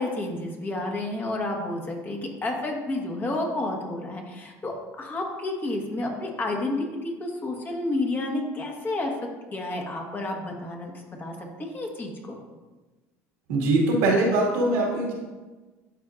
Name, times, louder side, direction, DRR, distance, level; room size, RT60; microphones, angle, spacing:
voice 1, 0.0-9.1 9.5-12.4, left 2 dB, 30° left, 1 dB, 1.3 m, -30 dB
voice 2, 13.5-15.1, right 2 dB, 90° right, -2 dB, 1.9 m, -22 dB
11.0 x 4.4 x 2.5 m, 1.2 s
supercardioid pair, 100°, 7 cm